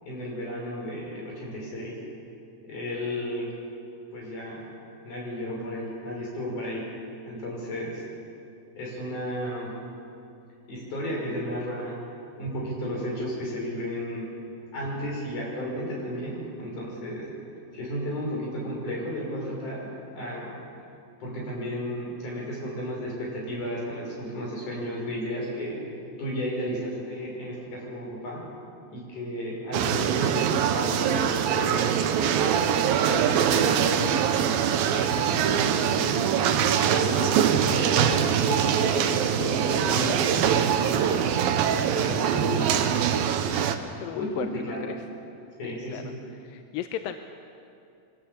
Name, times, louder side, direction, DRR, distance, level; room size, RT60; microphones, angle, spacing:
voice 1, 0.0-2.0 2.6-3.5 4.1-4.7 5.0-6.9 7.2-8.0 8.8-9.8 10.7-12.0 12.4-14.3 14.7-17.3 17.7-19.9 20.1-20.5 21.2-25.8 26.2-28.4 28.9-31.9 32.4-33.7 34.2-36.3 36.9-37.4 37.6-40.3 40.7-41.3 41.9-42.9 44.1-44.9 45.6-46.1, equal, 55° left, -3 dB, 7.7 m, -33 dB
sound 1, 29.7-43.8, right 8 dB, 75° right, 2.7 m, -23 dB
voice 2, 44.0-45.0 45.6-46.0 46.5-47.2, left 11 dB, 80° left, 7 dB, 2.3 m, -35 dB
24.0 x 18.5 x 7.4 m, 2.6 s
omnidirectional pair, 4.4 m